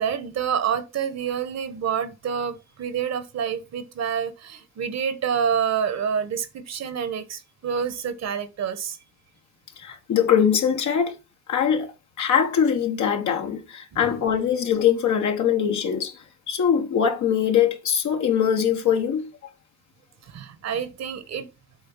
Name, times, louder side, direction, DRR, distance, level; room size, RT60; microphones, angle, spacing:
voice 1, 0.0-9.0 13.9-14.2 20.3-21.5, right 7 dB, 60° right, 1.2 m, -28 dB
voice 2, 9.8-11.1 11.5-11.9 12.2-16.1 16.5-19.3, left 8 dB, 70° left, 1.4 m, -22 dB
7.8 x 3.9 x 5.4 m
cardioid pair, 90°, 30 cm